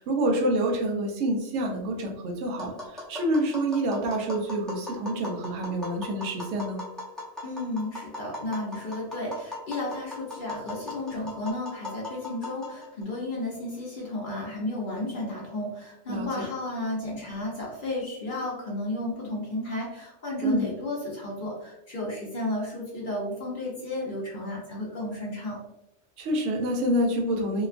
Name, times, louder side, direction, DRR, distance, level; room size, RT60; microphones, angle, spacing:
voice 1, 0.0-6.8 16.1-16.5 20.4-20.7 26.2-27.7, right 1 dB, 70° right, 1 dB, 0.9 m, -27 dB
Tap, 2.6-13.0, left 2 dB, ahead, 0.5 m, -39 dB
voice 2, 7.4-25.6, left 1 dB, 50° left, -4 dB, 0.7 m, -33 dB
2.9 x 2.3 x 2.4 m, 0.88 s
omnidirectional pair, 1.3 m